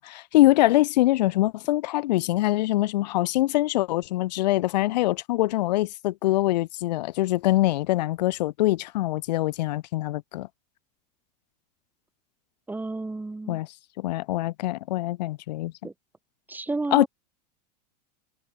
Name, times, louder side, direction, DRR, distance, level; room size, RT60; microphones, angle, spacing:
voice 1, 0.0-10.5 13.5-13.7 14.0-15.7 16.9-17.1, left 17 dB, 80° left, 0.5 m, -24 dB
voice 2, 12.7-13.6 15.8-15.9 16.5-17.1, right 2 dB, 10° right, 2.9 m, -31 dB
supercardioid pair, 120°, 21 cm